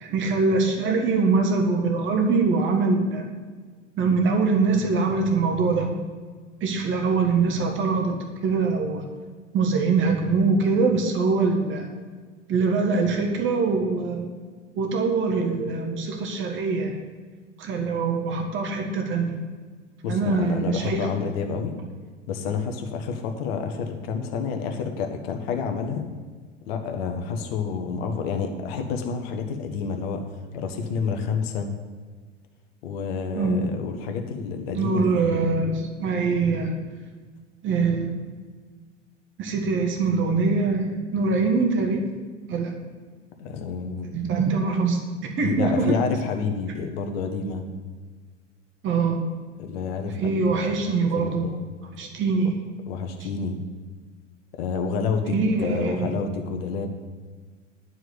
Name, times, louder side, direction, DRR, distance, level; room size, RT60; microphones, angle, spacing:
voice 1, 0.0-3.3 4.0-5.9 6.6-8.2 8.4-9.0 9.5-11.9 12.5-14.3 14.7-17.0 17.6-19.3 20.1-21.1 33.3-33.7 34.7-36.7 37.6-38.1 39.4-42.0 42.5-42.7 44.1-46.0 48.8-49.2 50.2-51.5 52.0-52.6 55.3-56.1, right 4 dB, 30° right, 3 dB, 1.5 m, -23 dB
voice 2, 20.0-21.8 22.3-26.0 26.7-30.2 30.5-31.7 32.8-35.4 43.4-44.1 45.4-47.6 49.6-50.4 50.7-50.8 51.1-51.6 52.9-53.6 54.5-56.9, left 5 dB, 55° left, 5 dB, 1.4 m, -29 dB
11.5 x 4.8 x 7.9 m, 1.5 s
figure-of-eight pair, 85°, 37 cm